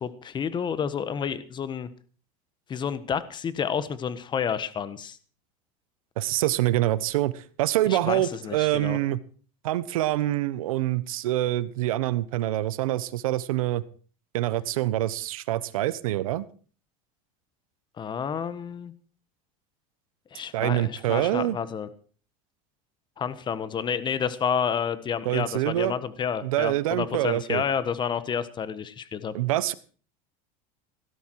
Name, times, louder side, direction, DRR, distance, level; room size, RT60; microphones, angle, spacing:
voice 1, 0.0-1.9 2.7-5.2 7.9-9.0 18.0-18.9 20.3-21.9 23.2-29.3, left 7 dB, 25° left, 14 dB, 1.3 m, -30 dB
voice 2, 6.2-9.2 9.6-13.8 14.3-16.5 20.5-21.6 25.2-25.9 26.4-27.6 29.3-29.7, right 15 dB, 90° right, 16 dB, 1.1 m, -25 dB
17.0 x 12.0 x 4.8 m, 0.41 s
supercardioid pair, 125°, 17 cm